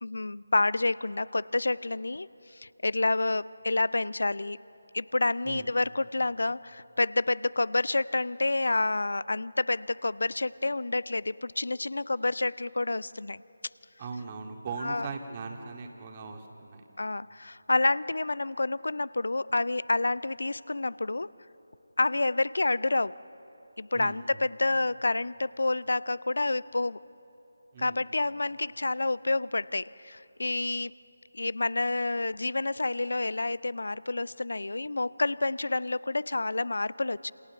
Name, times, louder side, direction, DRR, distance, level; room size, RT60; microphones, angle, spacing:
voice 1, 0.0-2.3 2.5-4.6 4.9-13.4 14.8-15.1 17.0-21.3 22.0-23.2 23.8-27.0 27.8-30.9 31.3-37.3, left 2 dB, 60° left, 20 dB, 0.6 m, -28 dB
voice 2, 14.0-16.8 23.9-24.5 27.7-28.0, right 4 dB, 25° right, 3 dB, 2.2 m, -39 dB
28.0 x 28.0 x 7.0 m, 3.0 s
figure-of-eight pair, 160°, 0 cm